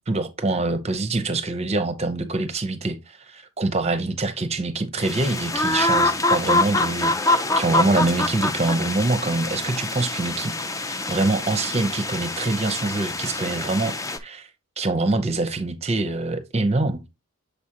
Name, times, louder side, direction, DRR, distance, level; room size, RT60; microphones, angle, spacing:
voice 1, 0.1-14.5 14.8-17.0, right 2 dB, 30° right, 0.6 m, -25 dB
sound 1, 5.0-14.2, left 2 dB, 15° left, 0.4 m, -25 dB
6.8 x 4.9 x 2.8 m
head